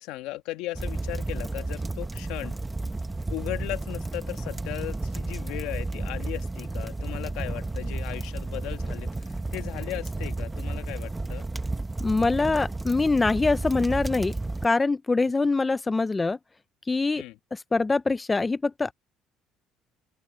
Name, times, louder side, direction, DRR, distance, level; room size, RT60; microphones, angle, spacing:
voice 1, 0.0-2.5 3.3-11.5 17.2-17.4, left 17 dB, 85° left, 1.5 m, -37 dB
sound 1, 0.7-14.7, right 2 dB, 10° right, 0.8 m, -32 dB
voice 2, 12.0-14.3 14.6-16.4 16.9-17.2 17.5-18.9, left 3 dB, 15° left, 0.3 m, -24 dB
open air
cardioid pair, 170°, 0 cm